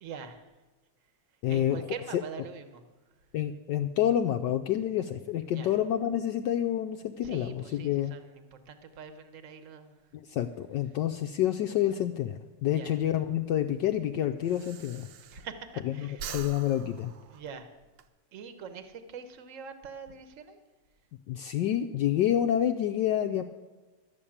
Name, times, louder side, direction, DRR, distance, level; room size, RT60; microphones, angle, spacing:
voice 1, 0.0-0.5 1.3-3.3 5.4-5.8 7.2-10.2 12.7-13.0 15.2-16.3 17.3-17.8 18.3-20.6, right 6 dB, 50° right, 9 dB, 1.0 m, -44 dB
voice 2, 1.4-1.8 3.3-8.1 10.3-15.1 16.0-16.1 16.3-17.1 21.3-23.4, left 11 dB, 80° left, 6 dB, 1.0 m, -28 dB
Breathing, 13.0-15.8 16.1-18.1, right 6 dB, 70° right, 1.3 m, -44 dB
12.5 x 6.8 x 8.6 m, 1.2 s
omnidirectional pair, 2.4 m